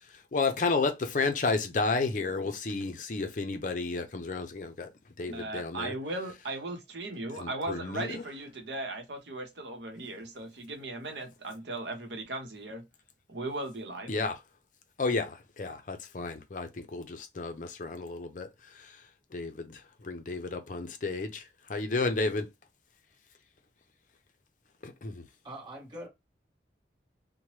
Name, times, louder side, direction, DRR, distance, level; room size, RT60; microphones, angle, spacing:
voice 1, 0.0-4.9 5.2-5.9 7.4-8.2 14.1-14.4 15.0-22.5 24.8-25.3, left 3 dB, 45° left, 0.5 m, -32 dB
voice 2, 5.3-12.8 13.3-14.1, right 2 dB, 80° right, 0.8 m, -37 dB
voice 3, 25.4-26.1, right 1 dB, 25° right, 1.1 m, -42 dB
2.9 x 2.1 x 3.0 m
head